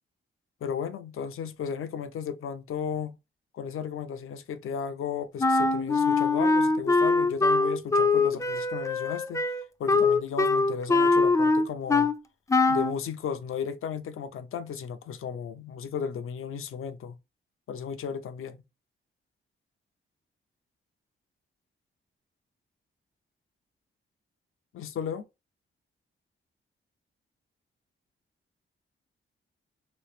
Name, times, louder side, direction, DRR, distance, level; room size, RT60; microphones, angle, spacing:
voice 1, 0.6-3.2 3.5-9.4 9.8-12.1 12.7-17.2 17.7-18.6 24.7-25.2, left 7 dB, 85° left, 0.6 m, -34 dB
Wind instrument woodwind instrument, 5.4-12.2 12.5-12.9, left 3 dB, 15° left, 0.3 m, -23 dB
3.1 x 3.1 x 3.2 m
wide cardioid pair, 120°, 21 cm